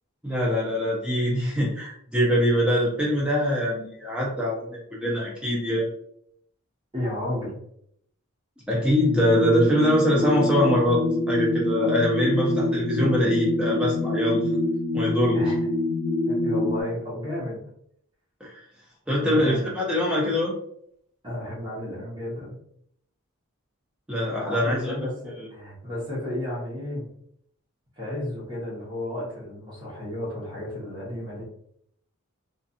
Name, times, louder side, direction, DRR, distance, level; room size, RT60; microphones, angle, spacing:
voice 1, 0.2-5.9 8.7-14.5 14.9-15.4 18.4-18.6 19.1-20.5 24.1-25.0 25.4-25.5, equal, 5° right, -5 dB, 0.4 m, -23 dB
voice 2, 6.9-7.6 15.2-15.6 16.3-17.6 19.2-19.7 21.2-22.6 24.3-27.1 28.0-31.4, left 1 dB, 20° right, -6 dB, 1.1 m, -32 dB
sound 1, 9.1-16.8, left 1 dB, 45° left, 1.1 m, -25 dB
2.7 x 2.5 x 2.4 m, 0.70 s
head